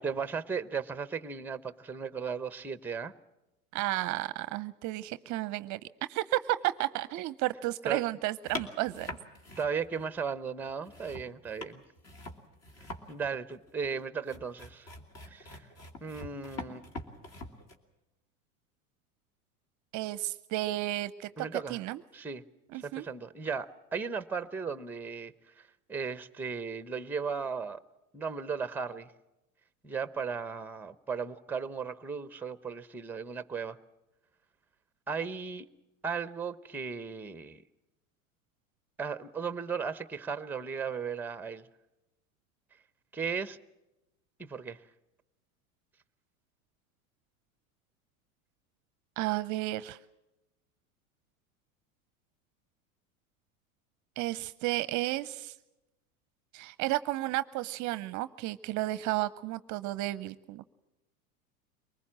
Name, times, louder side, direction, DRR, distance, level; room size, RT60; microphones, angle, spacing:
voice 1, 0.0-3.1 7.9-8.0 9.6-11.8 12.8-14.9 15.2-15.7 16.0-16.8 21.4-21.8 22.1-22.4 22.8-25.3 25.9-27.8 28.1-29.1 29.8-33.8 35.1-35.7 36.0-37.6 39.0-41.7 43.1-43.6 44.4-44.8, right 6 dB, 5° right, 14 dB, 0.8 m, -36 dB
voice 2, 3.7-5.8 6.1-9.1 19.9-22.0 22.7-23.1 49.2-50.0 54.2-55.5 56.5-60.7, right 17 dB, 45° right, 16 dB, 0.7 m, -32 dB
sound 1, 8.5-10.3 10.6-17.8, left 2 dB, 35° left, 2.9 m, -44 dB
23.5 x 20.0 x 7.5 m, 0.97 s
hypercardioid pair, 95°, 43 cm